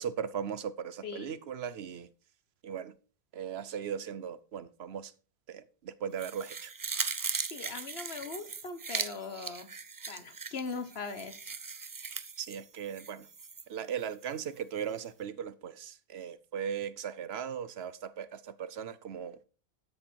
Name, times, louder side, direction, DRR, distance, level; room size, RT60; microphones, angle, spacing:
voice 1, 0.0-2.1 2.6-2.9 3.3-5.1 5.5-6.7 12.4-13.3 13.7-19.4, right 8 dB, 85° right, 1.0 m, -38 dB
voice 2, 1.0-1.4 7.5-9.7 10.1-11.6, left 4 dB, 80° left, 1.5 m, -40 dB
sound 1, 6.2-13.6 14.0-14.1, right 5 dB, 35° right, 0.3 m, -39 dB
12.5 x 6.6 x 4.5 m
omnidirectional pair, 1.0 m